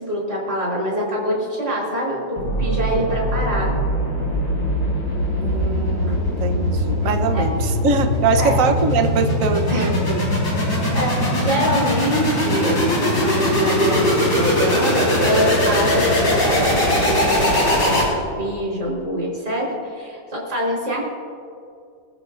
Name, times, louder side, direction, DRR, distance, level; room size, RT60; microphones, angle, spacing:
voice 1, 0.0-3.7 6.1-6.2 7.3-7.5 8.4-8.6 9.7-9.9 10.9-21.1, equal, 35° right, -4 dB, 4.4 m, -24 dB
sound 1, 2.4-18.5, left 1 dB, 60° left, 5.0 m, -21 dB
voice 2, 5.4-10.2, right 4 dB, 50° right, 6 dB, 1.2 m, -22 dB
25.5 x 14.0 x 2.6 m, 2.4 s
omnidirectional pair, 2.0 m